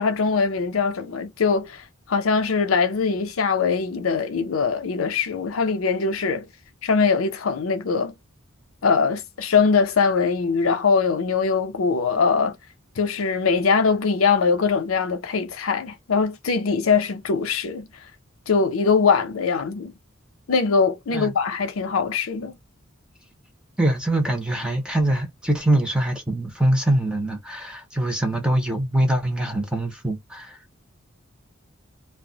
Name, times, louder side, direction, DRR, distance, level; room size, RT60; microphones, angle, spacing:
voice 1, 0.0-1.8 2.1-6.5 6.8-8.1 8.8-12.6 13.0-17.9 18.5-19.9 20.5-22.6, left 5 dB, 80° left, 0.6 m, -22 dB
voice 2, 23.8-30.6, right 1 dB, 5° right, 0.7 m, -23 dB
2.2 x 2.1 x 3.7 m
head